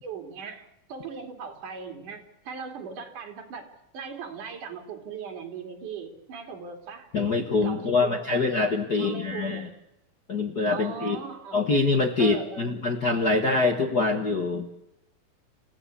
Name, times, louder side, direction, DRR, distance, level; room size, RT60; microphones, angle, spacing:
voice 1, 0.0-7.1 7.6-8.4 9.0-9.7 10.7-11.6 12.2-12.8, right 5 dB, 60° right, 3 dB, 4.1 m, -39 dB
voice 2, 7.1-9.7 10.3-11.2 11.5-14.7, left 3 dB, 55° left, 4 dB, 1.1 m, -24 dB
27.5 x 16.0 x 8.4 m, 0.88 s
omnidirectional pair, 4.1 m